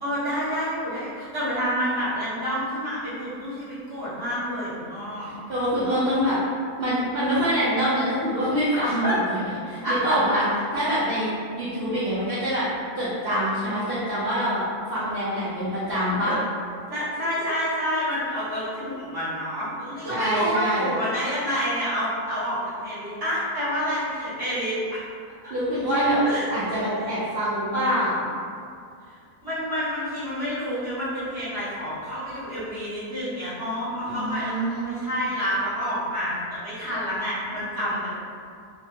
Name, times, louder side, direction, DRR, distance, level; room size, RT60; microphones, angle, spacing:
voice 1, 0.0-5.3 5.9-6.0 8.7-9.2 9.8-10.0 16.2-16.3 16.9-24.8 25.4-25.5 26.2-26.7 29.4-38.2, equal, 15° right, -12 dB, 0.9 m, -28 dB
voice 2, 5.5-6.4 6.8-9.3 9.7-10.4 10.7-11.3 11.6-12.7 13.0-14.6 14.9-16.4 20.1-20.9 25.5-26.2 26.5-28.3 34.0-35.1, equal, 65° right, -11 dB, 0.5 m, -25 dB
2.7 x 2.3 x 2.7 m, 2.3 s
omnidirectional pair, 1.6 m